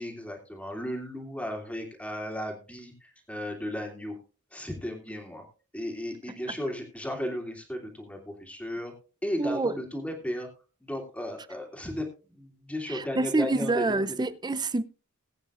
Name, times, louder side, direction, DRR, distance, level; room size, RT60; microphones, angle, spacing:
voice 1, 0.0-4.2 4.5-5.4 5.7-8.9 9.2-10.5 10.8-14.0, left 1 dB, 5° left, 2.8 m, -35 dB
voice 2, 9.4-9.7 12.9-14.8, right 3 dB, 20° right, 0.5 m, -27 dB
21.0 x 8.7 x 2.5 m
head